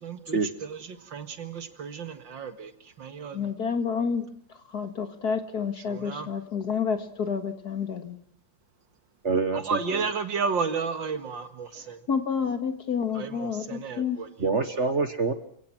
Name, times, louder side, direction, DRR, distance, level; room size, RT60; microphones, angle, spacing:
voice 1, 0.0-2.7 3.0-3.5 5.9-6.3 9.5-12.0 13.1-14.5, right 5 dB, 70° right, 9 dB, 2.5 m, -33 dB
voice 2, 3.3-4.3 4.7-8.2 12.1-14.2, left 6 dB, 50° left, 8 dB, 2.3 m, -29 dB
voice 3, 9.2-10.0 14.4-15.3, right 4 dB, 40° right, 10 dB, 1.5 m, -26 dB
28.5 x 17.5 x 6.2 m, 0.66 s
omnidirectional pair, 2.2 m